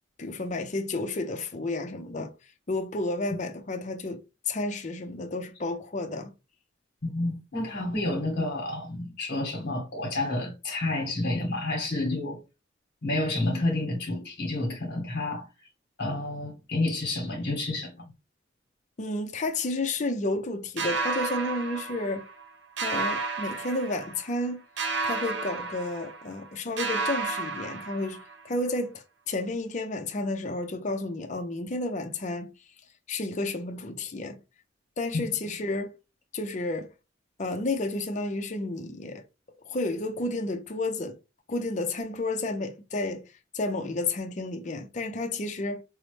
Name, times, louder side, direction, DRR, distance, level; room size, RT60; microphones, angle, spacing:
voice 1, 0.2-2.3 2.7-4.2 4.5-6.3 19.0-22.3 22.8-24.6 25.0-28.2 28.4-32.5 33.1-34.4 35.0-36.0 36.3-36.9 37.4-39.2 39.6-41.2 41.5-43.2 43.5-45.8, left 2 dB, 40° left, 0.5 m, -31 dB
voice 2, 7.0-12.4 13.0-15.5 16.0-18.1 35.1-35.2, left 2 dB, 60° left, 1.2 m, -29 dB
sound 1, 20.8-22.5 22.8-24.4 24.8-26.5 26.8-28.5, right 4 dB, 65° right, 0.7 m, -32 dB
5.4 x 2.1 x 3.1 m
head